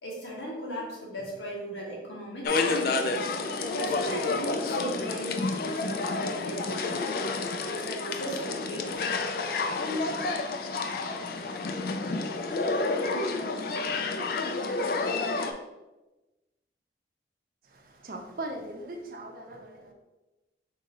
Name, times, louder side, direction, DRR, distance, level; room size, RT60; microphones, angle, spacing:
voice 1, 0.0-2.7 3.7-7.1 7.7-9.2, right 1 dB, 85° left, -3 dB, 1.2 m, -37 dB
sound 1, 2.4-15.5, left 3 dB, 55° left, 0.3 m, -30 dB
voice 2, 17.6-19.9, right 2 dB, 50° right, 2 dB, 0.6 m, -40 dB
3.7 x 2.7 x 4.1 m, 1.1 s
head